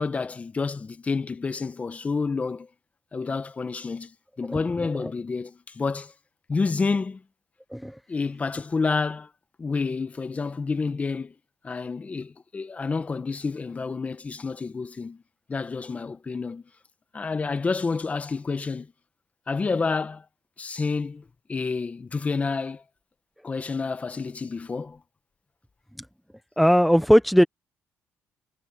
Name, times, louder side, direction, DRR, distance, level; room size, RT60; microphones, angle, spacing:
voice 1, 0.0-2.7 3.1-6.1 6.5-7.2 8.1-9.3 9.6-11.3 11.6-15.2 15.5-16.6 17.1-18.9 19.5-20.2 20.6-22.8 23.4-25.0, left 4 dB, 30° left, 1.6 m, -29 dB
voice 2, 26.6-27.4, equal, ahead, 1.0 m, -18 dB
cardioid pair, 95°, 5 cm